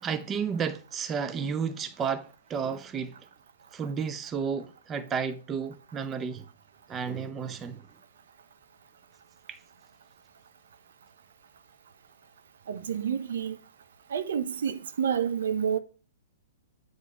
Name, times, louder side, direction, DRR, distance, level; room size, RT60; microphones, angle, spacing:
voice 1, 0.0-3.1 3.7-6.4 6.9-7.8 9.5-9.6, right 6 dB, 20° right, 0.5 m, -32 dB
voice 2, 12.7-13.6 14.1-15.8, right 8 dB, 65° right, 0.7 m, -29 dB
9.0 x 3.2 x 4.7 m
figure-of-eight pair, 115°, 0 cm